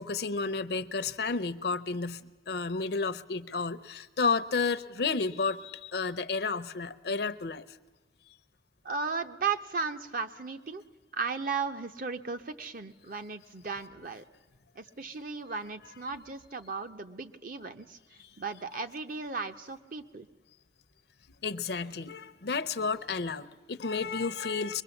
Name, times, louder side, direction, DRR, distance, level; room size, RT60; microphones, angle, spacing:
voice 1, 0.0-7.6 18.2-18.3 21.4-24.8, left 4 dB, 55° left, 12 dB, 0.6 m, -31 dB
voice 2, 8.8-10.8 11.1-14.2 14.8-18.0 18.4-20.3, right 5 dB, 45° right, 8 dB, 0.8 m, -35 dB
24.0 x 21.0 x 7.1 m, 1.2 s
head